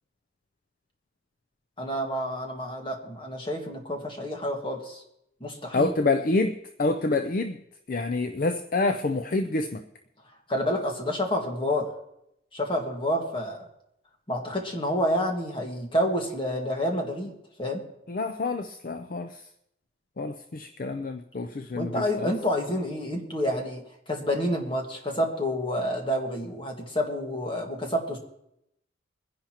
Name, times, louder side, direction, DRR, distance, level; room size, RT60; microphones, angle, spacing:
voice 1, 1.8-5.0 5.4-5.9 10.5-11.9 12.5-13.6 14.3-17.3 17.6-17.8 21.7-23.8 24.1-28.2, equal, 25° left, 2 dB, 1.7 m, -28 dB
voice 2, 5.7-7.6 7.9-9.8 18.1-19.4 20.2-22.3, left 3 dB, 45° left, 8 dB, 0.5 m, -27 dB
22.5 x 10.5 x 2.9 m, 0.80 s
head